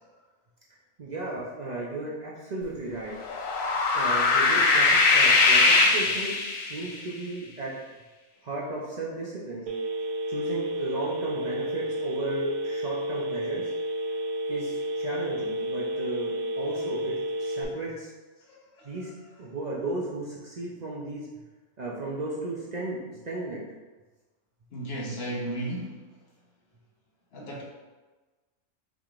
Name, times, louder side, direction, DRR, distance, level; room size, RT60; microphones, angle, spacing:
voice 1, 1.0-3.1 3.9-7.8 8.4-9.6 10.3-13.7 14.5-17.1 17.4-18.1 18.8-19.1 19.4-21.3 21.8-23.0 23.2-23.6, right 2 dB, 45° right, -5 dB, 0.6 m, -35 dB
sound 1, 3.2-6.9, left 3 dB, 75° left, 1.1 m, -21 dB
Telephone, 9.7-17.6, right 1 dB, 65° right, 0.9 m, -31 dB
voice 2, 18.4-19.0 24.7-26.0 27.3-27.6, right 1 dB, 50° left, -2 dB, 1.1 m, -35 dB
5.8 x 3.5 x 2.4 m, 1.3 s
omnidirectional pair, 1.4 m